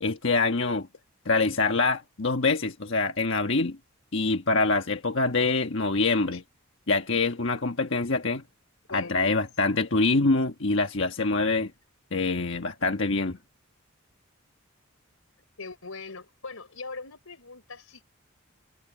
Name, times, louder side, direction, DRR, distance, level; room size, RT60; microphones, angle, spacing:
voice 1, 0.0-0.9 1.2-3.8 4.1-6.4 6.9-8.4 8.9-11.7 12.1-13.4, left 3 dB, 60° left, 1.4 m, -25 dB
voice 2, 8.9-9.4 15.6-18.0, left 4 dB, 85° left, 4.5 m, -41 dB
head